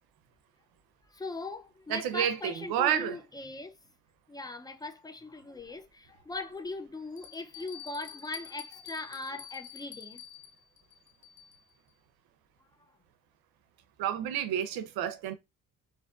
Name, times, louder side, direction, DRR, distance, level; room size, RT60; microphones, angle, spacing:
voice 1, 1.1-3.8 4.3-10.2, left 2 dB, 10° left, 0.3 m, -40 dB
voice 2, 1.9-3.2 14.0-15.3, right 10 dB, 85° right, 0.6 m, -30 dB
Bell, 5.6-5.7 6.3-6.4 7.2-11.7, left 8 dB, 75° left, 0.7 m, -48 dB
2.5 x 2.5 x 2.3 m
cardioid pair, 75°, 36 cm